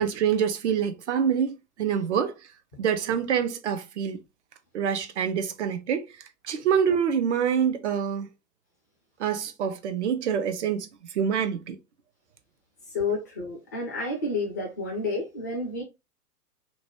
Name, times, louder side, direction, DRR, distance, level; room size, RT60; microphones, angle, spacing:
voice 1, 0.0-2.3 2.8-4.2 4.7-6.1 6.4-8.3 9.2-10.9 11.1-11.8, right 7 dB, 50° right, 0.5 m, -26 dB
voice 2, 12.9-15.8, left 3 dB, 15° left, 0.3 m, -30 dB
2.8 x 2.1 x 2.9 m
figure-of-eight pair, 115°, 47 cm